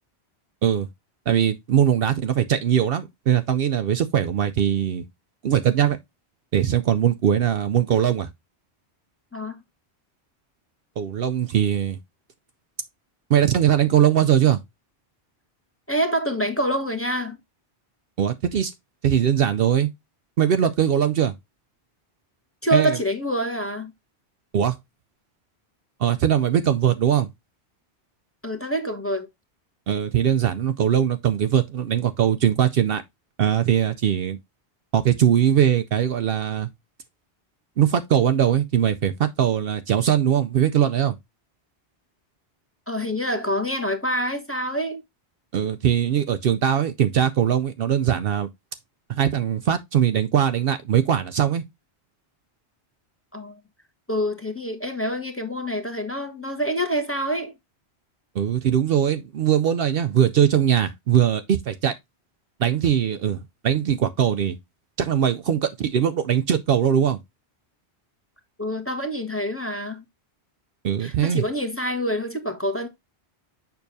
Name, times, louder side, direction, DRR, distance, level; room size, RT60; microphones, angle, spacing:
voice 1, 1.3-5.0 5.4-6.0 6.5-8.3 11.0-12.0 13.3-14.6 18.2-18.7 19.0-19.9 20.4-21.3 22.7-23.0 24.5-24.8 26.0-27.3 29.9-33.0 33.4-34.4 34.9-36.7 37.8-41.2 45.5-48.5 49.1-51.6 58.3-61.9 62.6-64.6 65.0-67.2 70.8-71.4, right 9 dB, 65° right, 0.7 m, -21 dB
voice 2, 15.9-17.4 22.6-23.9 28.4-29.3 42.9-45.0 53.3-53.6 54.1-57.5 68.6-70.0 71.0-72.9, equal, 10° left, 1.1 m, -26 dB
6.9 x 5.7 x 2.6 m
omnidirectional pair, 1.1 m